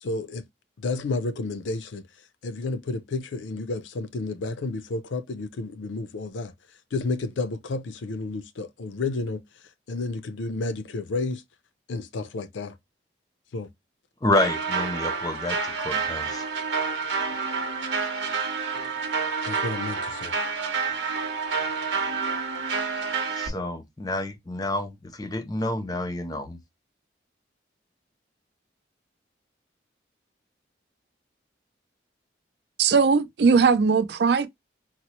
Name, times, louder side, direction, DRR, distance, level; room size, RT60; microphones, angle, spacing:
voice 1, 0.0-0.4 0.8-2.0 2.4-6.5 6.9-9.4 9.9-11.4 11.9-12.7 13.5-13.7 19.5-20.3, left 3 dB, 85° left, 0.5 m, -31 dB
voice 2, 14.2-16.4 23.4-26.6, left 1 dB, 20° left, 0.5 m, -28 dB
sound 1, 14.3-23.5, right 5 dB, 85° right, 0.9 m, -28 dB
voice 3, 32.8-34.5, right 5 dB, 65° right, 0.4 m, -19 dB
4.1 x 2.0 x 2.9 m
head